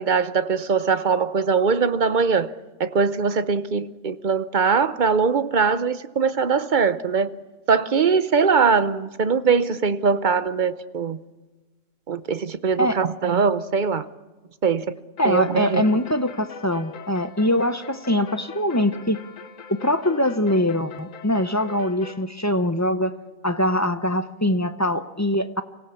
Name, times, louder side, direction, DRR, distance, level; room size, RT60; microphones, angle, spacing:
voice 1, 0.0-2.5 2.8-7.3 7.7-11.2 12.1-14.1 14.6-14.9 15.2-15.8, right 5 dB, 45° right, 0.8 m, -21 dB
sound 1, 15.2-22.2, left 6 dB, 75° left, 1.4 m, -42 dB
voice 2, 15.2-19.2 19.7-23.1 23.4-25.6, left 1 dB, 15° left, 0.7 m, -23 dB
25.0 x 17.0 x 7.1 m
omnidirectional pair, 1.3 m